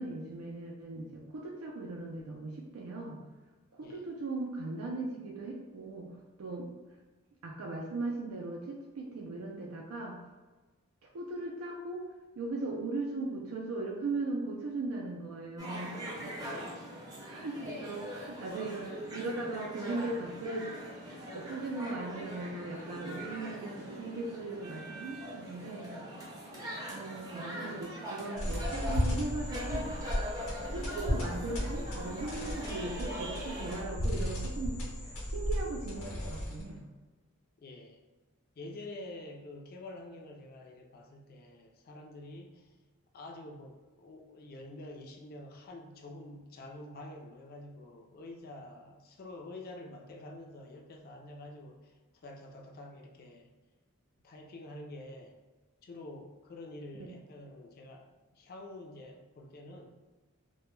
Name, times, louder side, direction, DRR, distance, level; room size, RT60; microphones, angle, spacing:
voice 1, 0.0-3.2 3.7-6.1 6.4-6.7 7.4-10.2 11.1-12.0 12.4-16.3 17.2-20.7 21.3-25.9 26.9-29.9 30.7-36.8, right 2 dB, 85° right, -1 dB, 0.4 m, -38 dB
sound 1, 15.6-33.8, equal, 15° right, 0.5 m, -42 dB
voice 2, 16.5-17.0 17.6-17.9 26.5-26.8 37.6-38.0 38.6-42.8 43.1-52.0 52.2-53.5 54.2-55.4 55.8-60.0, left 1 dB, 45° left, 2 dB, 0.4 m, -48 dB
sound 2, 28.4-36.8, left 1 dB, 80° left, 0.8 m, -35 dB
2.1 x 2.1 x 3.0 m, 1.2 s
head